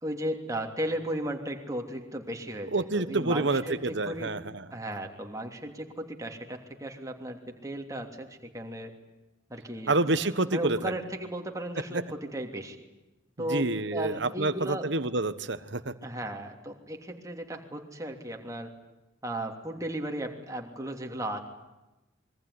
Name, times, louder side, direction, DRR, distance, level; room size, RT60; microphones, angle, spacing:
voice 1, 0.0-4.3 4.7-8.3 8.5-8.9 9.5-9.9 10.5-12.8 13.4-14.9 16.0-18.7 19.2-21.4, right 1 dB, 15° right, 3 dB, 3.1 m, -35 dB
voice 2, 2.7-4.6 9.9-10.9 11.9-12.0 13.4-15.9, right 2 dB, 60° right, 11 dB, 1.3 m, -28 dB
26.5 x 23.0 x 9.8 m, 1.0 s
head